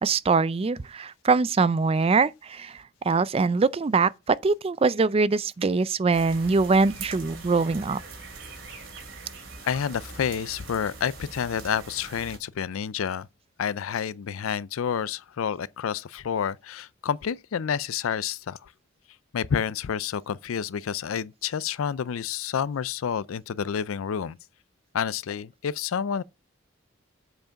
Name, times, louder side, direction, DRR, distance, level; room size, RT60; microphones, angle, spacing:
voice 1, 0.0-8.0, right 4 dB, 30° right, 0.4 m, -23 dB
sound 1, 6.1-12.4, right 3 dB, 70° right, 2.6 m, -42 dB
voice 2, 9.6-13.3 13.6-18.7 19.3-24.4 24.9-26.2, left 7 dB, 85° left, 0.4 m, -29 dB
7.8 x 4.7 x 5.7 m
head